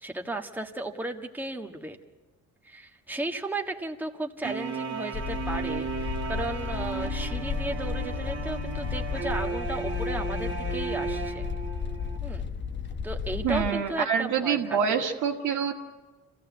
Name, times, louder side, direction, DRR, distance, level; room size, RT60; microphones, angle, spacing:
voice 1, 0.0-2.0 2.6-11.5 12.2-12.5 13.0-15.0, right 2 dB, 5° right, 3 dB, 1.5 m, -35 dB
sound 1, 4.4-12.2, right 5 dB, 40° right, 1.9 m, -34 dB
sound 2, 5.1-13.7, left 7 dB, 40° left, 1.1 m, -33 dB
voice 2, 13.4-15.7, right 7 dB, 80° right, 3 dB, 2.0 m, -26 dB
26.5 x 15.0 x 8.3 m, 1.2 s
cardioid pair, 90°, 30 cm